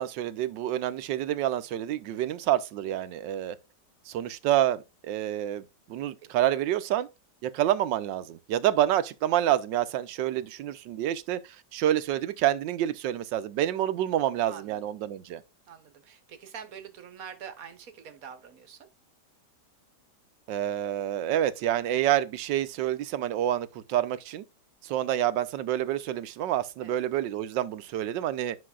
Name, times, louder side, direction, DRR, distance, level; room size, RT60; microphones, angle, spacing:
voice 1, 0.0-3.6 4.1-7.1 7.4-15.4 20.5-24.4 24.8-28.6, right 12 dB, 85° right, 1.4 m, -28 dB
voice 2, 6.2-6.5 14.5-14.8 15.7-18.9 26.8-26.9, right 7 dB, 55° right, 1.4 m, -45 dB
9.7 x 5.8 x 2.3 m
omnidirectional pair, 1.9 m